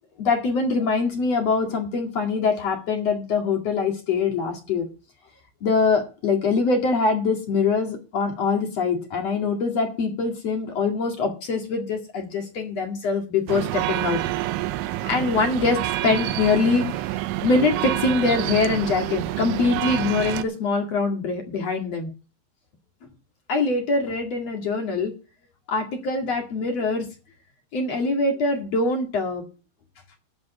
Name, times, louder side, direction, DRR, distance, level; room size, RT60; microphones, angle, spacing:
voice 1, 0.2-4.9 5.6-14.2 15.1-22.1 23.5-25.1 25.7-27.1 27.7-29.4, left 4 dB, 50° left, 3 dB, 2.0 m, -23 dB
sound 1, 13.5-20.4, right 15 dB, 80° right, 2.9 m, -28 dB
13.0 x 5.2 x 7.9 m, 0.34 s
omnidirectional pair, 5.9 m